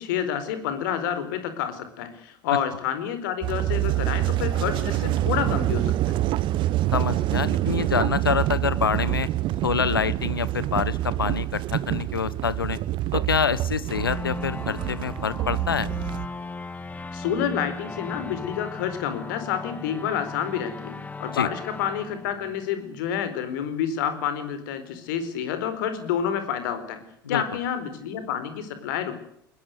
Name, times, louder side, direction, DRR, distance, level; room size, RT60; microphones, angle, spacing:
voice 1, 0.0-6.2 17.1-27.0 27.3-29.2, left 9 dB, 60° left, 10 dB, 4.3 m, -29 dB
sound 1, 3.4-16.3, right 15 dB, 45° right, 1.1 m, -26 dB
voice 2, 6.9-9.3 9.6-12.8 13.1-15.9 21.3-21.5 27.2-27.4, left 6 dB, 80° left, 19 dB, 1.0 m, -26 dB
sound 2, 13.9-23.2, left 3 dB, 15° left, 1.7 m, -37 dB
21.0 x 21.0 x 8.0 m, 0.69 s
figure-of-eight pair, 70°, 12 cm